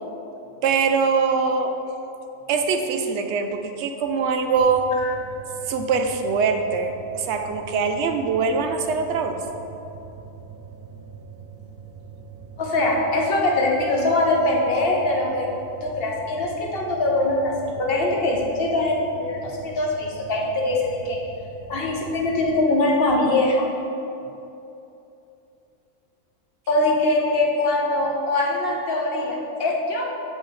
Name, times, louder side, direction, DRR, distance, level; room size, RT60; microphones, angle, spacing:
voice 1, 0.6-1.7 2.5-4.9 5.7-9.4, right 5 dB, 65° right, 6 dB, 0.8 m, -23 dB
sound 1, 4.6-22.5, right 5 dB, 85° right, 1.2 m, -43 dB
voice 2, 12.6-15.5 15.8-21.2 21.7-23.6 26.7-30.1, left 2 dB, 50° left, -1 dB, 1.0 m, -22 dB
6.9 x 5.5 x 3.1 m, 2.9 s
omnidirectional pair, 1.4 m